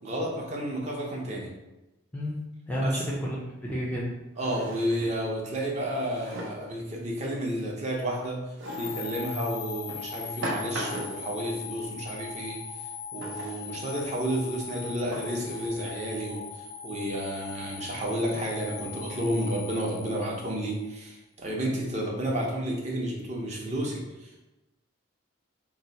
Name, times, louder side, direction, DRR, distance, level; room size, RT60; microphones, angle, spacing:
voice 1, 0.0-1.5 2.8-3.0 4.4-8.4 8.8-12.6 13.1-24.5, right 1 dB, 35° right, -2 dB, 0.6 m, -31 dB
voice 2, 2.7-3.4 3.6-4.2 18.3-18.4, equal, 10° left, -5 dB, 0.4 m, -30 dB
Drawer open or close, 3.0-3.1 4.4-5.2 5.9-6.7 8.6-9.1 9.9-11.3 13.2-13.7 14.4-14.5 15.1-15.7, right 1 dB, 75° right, 0.7 m, -38 dB
sound 1, 8.7-20.8, left 6 dB, 80° left, 0.4 m, -40 dB
2.8 x 2.1 x 3.9 m, 1.0 s
head